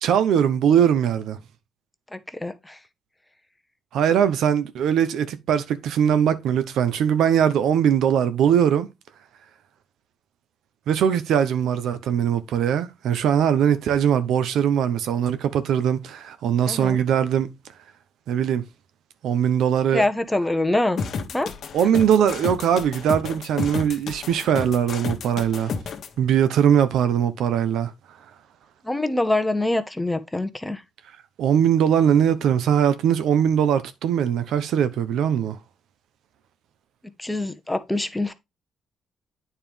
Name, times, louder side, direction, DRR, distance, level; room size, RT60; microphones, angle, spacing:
voice 1, 0.0-1.4 3.9-8.9 10.9-17.5 18.3-18.6 19.2-20.1 21.7-25.7 26.2-27.9 31.4-35.6, right 8 dB, 80° right, 0.7 m, -21 dB
voice 2, 2.1-2.8 16.7-17.0 19.9-21.0 21.3-21.5 28.8-30.8 37.2-38.3, left 2 dB, 10° left, 0.8 m, -25 dB
sound 1, 21.0-26.1, left 5 dB, 60° left, 1.1 m, -31 dB
9.0 x 4.4 x 3.5 m
cardioid pair, 90°, 0 cm